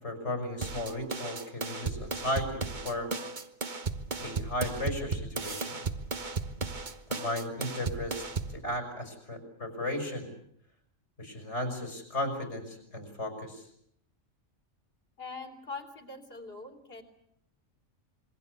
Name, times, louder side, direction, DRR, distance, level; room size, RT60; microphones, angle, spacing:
voice 1, 0.0-3.1 4.2-5.8 7.1-8.2 8.5-10.3 11.2-13.7, left 1 dB, 70° left, 6 dB, 6.4 m, -35 dB
sound 1, 0.6-8.6, right 4 dB, 40° right, 1.4 m, -35 dB
voice 2, 15.2-17.0, left 3 dB, 55° left, 5 dB, 3.7 m, -42 dB
26.5 x 23.0 x 8.2 m, 0.71 s
omnidirectional pair, 1.2 m